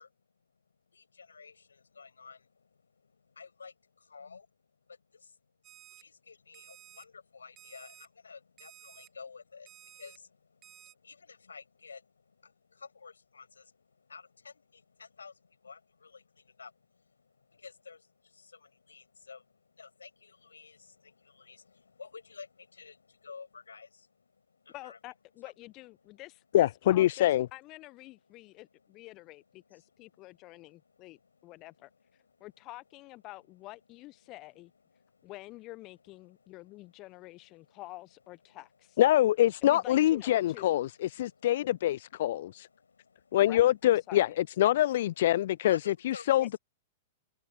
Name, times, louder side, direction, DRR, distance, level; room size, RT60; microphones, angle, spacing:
voice 1, 0.0-25.0 26.0-26.2 28.2-32.6 34.2-35.4 35.9-37.8 38.5-38.7 40.5-43.4 44.7-46.6, left 5 dB, 75° left, 7.7 m, -54 dB
Alarm, 5.6-6.0 6.5-7.1 7.6-8.1 8.6-9.1 9.7-10.2 10.6-10.9, right 13 dB, 30° right, 1.9 m, -54 dB
voice 2, 24.7-34.7 35.2-39.0 39.6-40.7 43.5-44.3, left 19 dB, 35° left, 1.0 m, -48 dB
voice 3, 26.5-27.5 39.0-42.7 43.3-45.8 46.0-46.6, left 13 dB, 55° left, 0.3 m, -25 dB
figure-of-eight pair, 100°, 0 cm